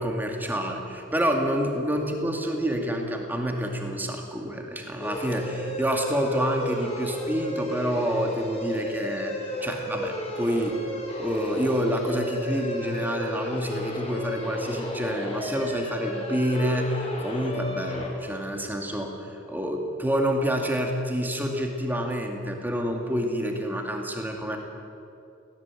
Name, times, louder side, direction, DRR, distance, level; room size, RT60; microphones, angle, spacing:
voice 1, 0.0-10.8 11.2-24.6, equal, 10° right, 2 dB, 2.2 m, -28 dB
sound 1, 5.0-18.1, left 1 dB, 30° left, 3.1 m, -33 dB
17.5 x 17.0 x 9.0 m, 2.7 s
head